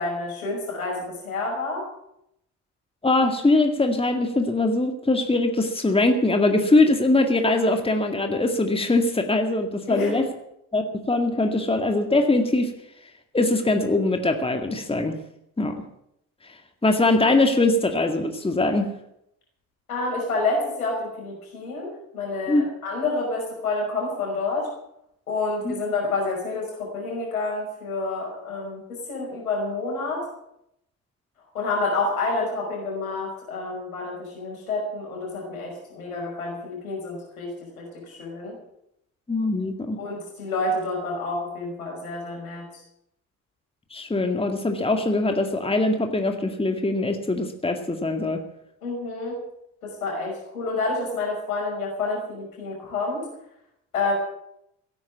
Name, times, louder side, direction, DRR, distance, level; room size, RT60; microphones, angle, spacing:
voice 1, 0.0-1.8 9.9-10.1 19.9-24.7 25.3-30.2 31.5-38.6 40.0-42.7 48.8-49.4 49.8-53.3 53.9-54.1, left 3 dB, 80° left, -1 dB, 5.7 m, -29 dB
voice 2, 3.0-10.3 10.7-12.7 13.3-15.2 15.6-15.8 16.4-18.9 22.5-22.7 25.6-25.7 39.3-40.0 43.9-48.4, left 2 dB, 15° left, 5 dB, 2.1 m, -22 dB
16.5 x 9.7 x 8.5 m, 0.79 s
figure-of-eight pair, 50°, 42 cm